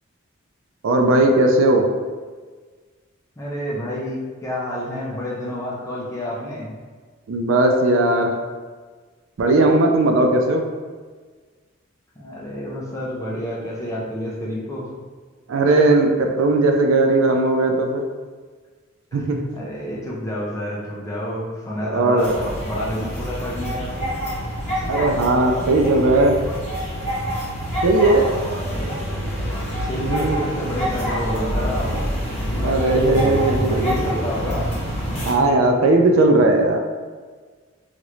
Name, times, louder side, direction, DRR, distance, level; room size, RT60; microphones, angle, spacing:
voice 1, 0.8-1.9 7.3-8.3 9.4-10.6 15.5-18.1 19.1-19.4 21.9-22.4 24.8-26.4 27.8-28.3 30.0-30.4 32.6-34.0 35.2-36.8, right 2 dB, 70° right, 3 dB, 0.4 m, -17 dB
voice 2, 3.4-6.7 12.2-14.9 19.1-24.2 28.4-29.2 29.8-32.1 32.4-34.7 35.5-35.6, equal, 15° left, -4 dB, 0.5 m, -29 dB
sound 1, 22.2-35.3, equal, 35° left, 1.0 m, -26 dB
3.0 x 2.5 x 3.0 m, 1.5 s
head